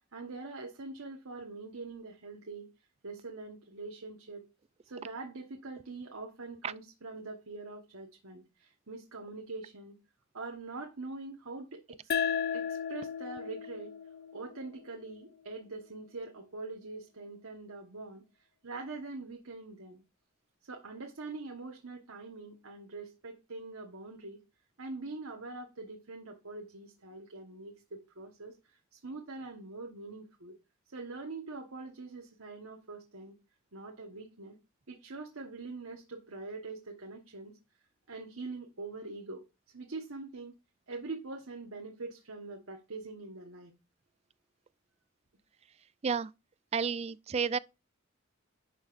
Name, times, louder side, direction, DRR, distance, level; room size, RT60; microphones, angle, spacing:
voice 1, 0.1-2.7 3.0-4.5 4.8-10.0 10.3-12.0 12.5-14.0 14.3-18.2 18.6-20.0 20.7-24.4 24.8-30.5 30.9-33.3 33.7-34.6 34.9-37.6 38.1-39.4 39.7-40.5 40.9-43.7, right 3 dB, 90° right, 1.3 m, -44 dB
sound 1, 12.1-15.3, left 7 dB, 50° left, 0.5 m, -35 dB
voice 2, 46.7-47.6, right 6 dB, 30° right, 0.3 m, -31 dB
11.0 x 6.4 x 2.5 m
head